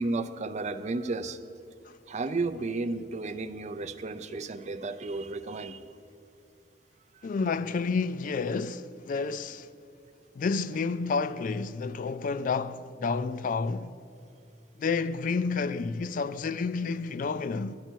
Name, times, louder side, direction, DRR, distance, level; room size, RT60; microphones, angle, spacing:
voice 1, 0.0-1.4 2.1-5.8, right 3 dB, 40° right, 0.4 m, -33 dB
voice 2, 7.2-9.7 10.4-14.0 14.8-17.8, left 4 dB, 45° left, 0.3 m, -30 dB
11.5 x 10.0 x 4.5 m
head